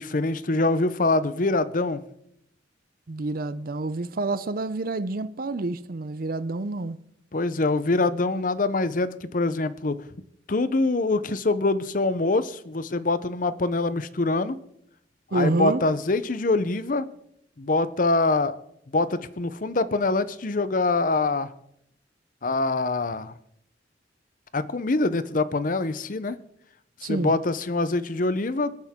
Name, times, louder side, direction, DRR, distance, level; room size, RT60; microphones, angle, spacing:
voice 1, 0.0-2.0 7.3-10.0 10.5-14.6 15.3-17.1 17.6-18.6 18.9-21.5 22.4-23.3 24.5-26.4 27.0-28.7, left 3 dB, 45° left, 0.7 m, -24 dB
voice 2, 3.1-7.0 15.3-15.8 27.0-27.3, right 2 dB, 50° right, 0.5 m, -28 dB
26.5 x 9.0 x 3.6 m
head